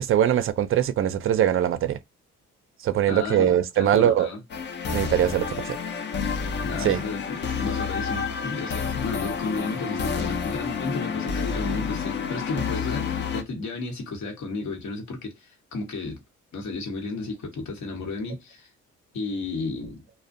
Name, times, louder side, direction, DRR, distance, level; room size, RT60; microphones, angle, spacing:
voice 1, 0.0-2.0 2.8-4.3 4.9-5.8 6.8-7.0, right 10 dB, 45° right, 0.4 m, -22 dB
voice 2, 3.1-4.4 6.6-16.2 16.5-18.7 19.1-20.0, left 3 dB, 65° left, 1.0 m, -33 dB
sound 1, 4.5-13.4, left 6 dB, 40° left, 0.5 m, -29 dB
2.5 x 2.1 x 2.4 m
cardioid pair, 90°, 30 cm